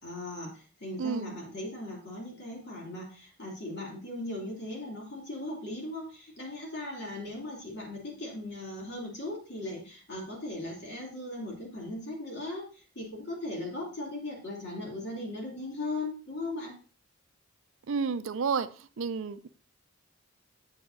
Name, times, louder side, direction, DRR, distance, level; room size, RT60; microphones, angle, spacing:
voice 1, 0.0-16.7, left 2 dB, 55° left, -2 dB, 2.7 m, -38 dB
voice 2, 1.0-1.4 17.9-18.7 19.0-19.5, right 5 dB, 70° right, 12 dB, 0.5 m, -30 dB
7.8 x 7.2 x 2.6 m, 0.37 s
head